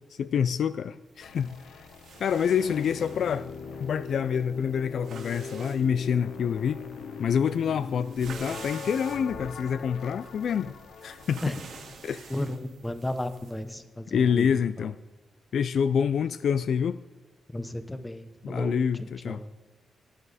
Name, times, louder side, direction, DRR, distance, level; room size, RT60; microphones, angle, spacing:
voice 1, 0.2-1.5 2.2-3.5 3.8-6.8 7.2-10.7 11.0-11.4 12.0-12.3 14.1-15.0 15.5-17.0 18.4-19.4, left 7 dB, 60° left, 0.3 m, -27 dB
sound 1, 1.1-13.7, right 6 dB, 70° right, 2.2 m, -49 dB
sound 2, 1.2-12.0, left 5 dB, 75° left, 0.9 m, -41 dB
voice 2, 12.3-14.9 17.5-19.5, left 1 dB, 10° left, 0.8 m, -34 dB
17.5 x 10.0 x 4.1 m
wide cardioid pair, 165°, 0 cm